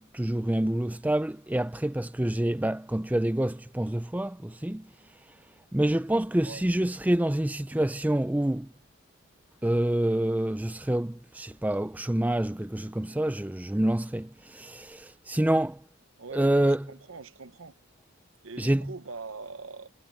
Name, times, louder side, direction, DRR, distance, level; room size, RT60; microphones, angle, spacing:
voice 1, 0.0-4.9 5.7-8.7 9.6-15.8 16.3-16.8 18.6-18.9, right 1 dB, 5° right, 0.4 m, -27 dB
voice 2, 16.2-17.7 18.4-19.9, right 4 dB, 70° right, 1.0 m, -42 dB
head